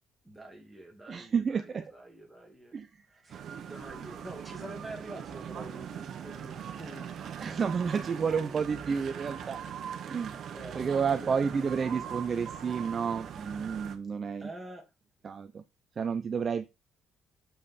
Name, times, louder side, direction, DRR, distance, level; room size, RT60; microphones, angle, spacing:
voice 1, 0.2-2.8 3.1-7.2 7.9-8.7 10.5-12.1 14.4-14.8, right 1 dB, 5° right, 2.0 m, -46 dB
voice 2, 1.1-1.9 2.7-2.9 3.5-3.6 7.4-9.6 10.1-10.5 10.8-14.5 15.2-15.6 16.0-16.6, right 6 dB, 30° right, 0.5 m, -30 dB
sound 1, 3.3-14.0, right 8 dB, 50° right, 1.1 m, -41 dB
7.1 x 5.4 x 4.1 m
cardioid pair, 165°, 0 cm